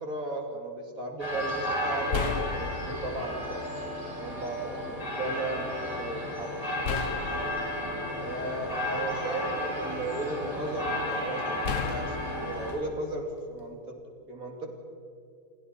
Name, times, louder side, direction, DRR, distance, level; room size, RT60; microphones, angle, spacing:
voice 1, 0.0-3.8 4.2-5.7 6.0-7.1 8.2-14.0 14.3-14.7, right 2 dB, 70° right, 2 dB, 3.1 m, -35 dB
sound 1, 1.2-12.7, left 1 dB, 25° left, 6.3 m, -33 dB
sound 2, 1.3-1.5 2.1-3.4 4.3-4.4 6.8-9.0 9.6-10.4 11.6-13.7, left 7 dB, 85° left, 1.5 m, -35 dB
29.5 x 24.0 x 4.4 m, 2.4 s
omnidirectional pair, 1.6 m